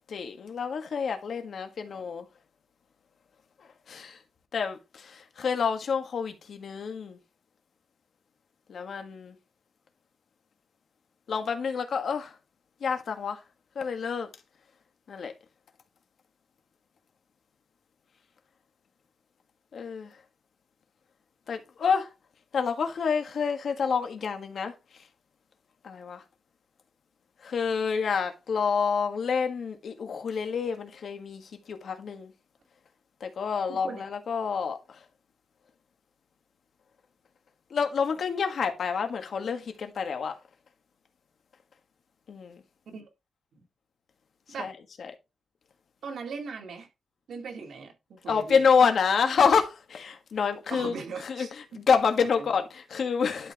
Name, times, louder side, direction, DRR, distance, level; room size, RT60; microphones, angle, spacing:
voice 1, 0.1-2.3 3.9-4.2 4.5-7.2 8.7-9.3 11.3-12.4 12.8-13.4 13.7-14.3 15.1-15.3 19.7-20.2 21.5-22.1 22.5-24.7 25.8-26.2 27.4-32.3 33.2-35.0 37.7-40.4 42.3-42.6 44.6-44.7 45.0-45.1 48.3-50.9 51.2-51.5 51.7-53.5, left 6 dB, 65° left, 1.5 m, -28 dB
voice 2, 33.7-34.0 42.9-43.0 43.5-43.6 44.5-44.7 46.0-46.9 47.3-48.6 50.7-51.8, right 5 dB, 75° right, 2.2 m, -39 dB
11.5 x 4.5 x 3.5 m
wide cardioid pair, 140°, 0 cm